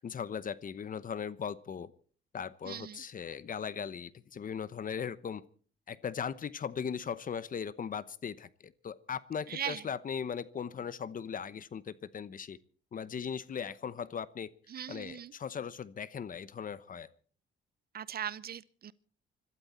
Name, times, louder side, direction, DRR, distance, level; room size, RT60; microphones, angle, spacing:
voice 1, 0.0-1.9 2.3-5.4 5.9-12.6 12.9-14.5 14.9-17.1, left 7 dB, 45° left, 0.9 m, -38 dB
voice 2, 2.6-3.0 9.5-9.8 14.7-15.3 17.9-18.9, right 9 dB, 50° right, 0.7 m, -39 dB
25.5 x 12.5 x 4.3 m
cardioid pair, 90°, 20 cm